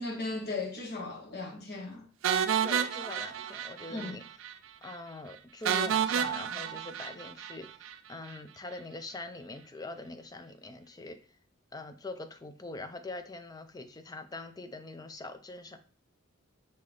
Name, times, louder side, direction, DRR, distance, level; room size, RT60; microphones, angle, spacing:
voice 1, 0.0-2.1 3.9-4.2, left 3 dB, 50° left, 1.1 m, -37 dB
sound 1, 2.2-4.1 4.4-4.5 4.9-5.0 5.6-7.9, right 8 dB, 65° right, 0.3 m, -30 dB
voice 2, 2.6-4.2 4.8-11.2 11.7-15.8, left 2 dB, 20° left, 0.4 m, -43 dB
5.3 x 2.8 x 3.3 m
head